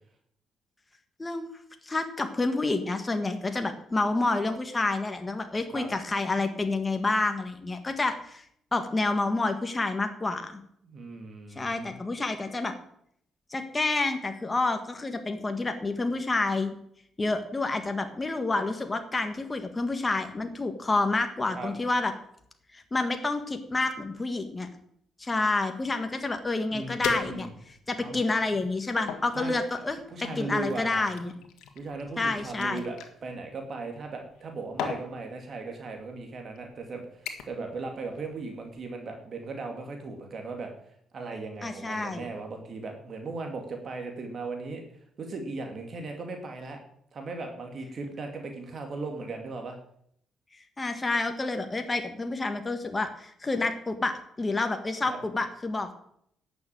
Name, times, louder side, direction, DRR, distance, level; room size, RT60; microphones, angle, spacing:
voice 1, 1.8-8.4 8.7-10.6 11.5-12.7 13.5-16.7 17.2-22.1 22.7-24.7 25.2-31.3 32.2-32.8 41.6-42.3 50.8-55.9, left 3 dB, 20° left, 6 dB, 1.7 m, -29 dB
voice 2, 10.8-11.9 21.5-21.7 26.7-27.5 28.0-28.2 29.3-29.6 30.1-31.1 31.7-40.7 41.1-44.8 45.2-46.8 47.1-49.8 55.0-55.2, right 3 dB, 50° right, 3 dB, 2.5 m, -37 dB
sound 1, 26.4-26.5 27.0-27.8 28.4-29.3 30.2-33.1 34.2-34.5 34.8-35.1 36.0-36.1 36.6-36.8 37.3-37.7 38.0-38.3 38.7-38.8, left 7 dB, 85° left, 1.7 m, -38 dB
11.0 x 7.0 x 9.0 m, 0.69 s
cardioid pair, 90°, 0 cm